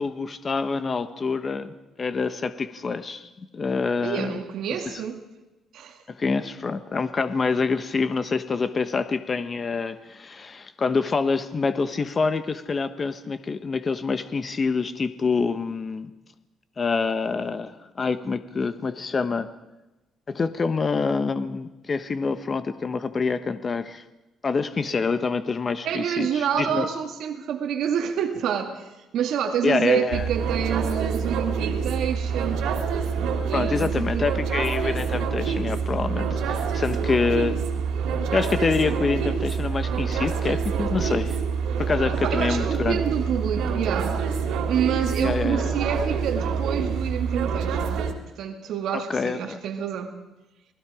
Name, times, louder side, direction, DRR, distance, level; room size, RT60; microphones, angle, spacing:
voice 1, 0.0-3.3 3.5-4.4 4.8-4.9 6.1-16.1 16.8-19.5 20.3-24.0 24.4-26.9 29.6-30.3 33.5-37.6 38.3-41.4 41.8-43.0 43.3-43.5 45.2-45.7 48.9-49.6, left 4 dB, 30° left, 11 dB, 1.1 m, -26 dB
voice 2, 4.0-5.2 5.7-6.0 25.8-32.6 33.5-34.3 42.2-44.2 44.7-48.1 48.4-50.2, right 8 dB, 70° right, 5 dB, 2.1 m, -28 dB
sound 1, 30.1-48.1, right 6 dB, 90° right, 3.0 m, -26 dB
28.5 x 20.0 x 5.0 m, 1.0 s
cardioid pair, 140°, 0 cm